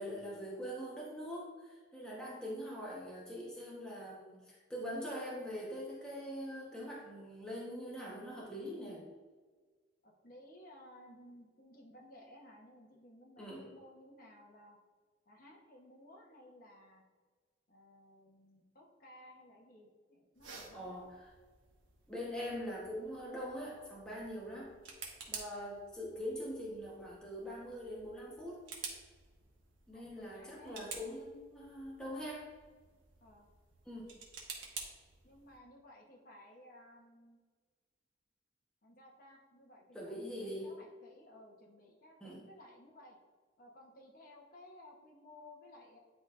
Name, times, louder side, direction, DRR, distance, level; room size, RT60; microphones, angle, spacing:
voice 1, 0.0-9.0 13.4-13.6 20.7-21.1 22.1-24.7 25.3-28.6 29.9-32.5 33.9-34.1 39.9-40.7 42.2-42.4, equal, 5° left, -6 dB, 1.1 m, -43 dB
voice 2, 10.0-14.8 15.3-17.0 17.7-21.1 29.9-30.8 33.2-33.5 35.2-37.4 38.8-43.2 43.6-46.0, left 1 dB, 50° left, -1 dB, 1.0 m, -57 dB
sound 1, 20.3-35.6, right 5 dB, 90° right, 1.1 m, -51 dB
9.5 x 4.1 x 2.5 m, 1.4 s
head